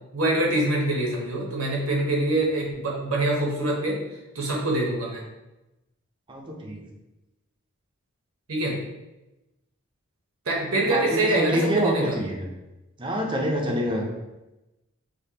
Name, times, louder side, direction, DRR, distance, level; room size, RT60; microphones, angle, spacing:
voice 1, 0.1-4.0 4.3-5.2 8.5-8.8 10.5-12.2, right 2 dB, 75° right, -1 dB, 0.9 m, -24 dB
voice 2, 6.3-6.8 10.9-12.5 13.0-14.1, equal, 20° right, 0 dB, 0.5 m, -26 dB
5.1 x 2.2 x 2.8 m, 0.99 s
head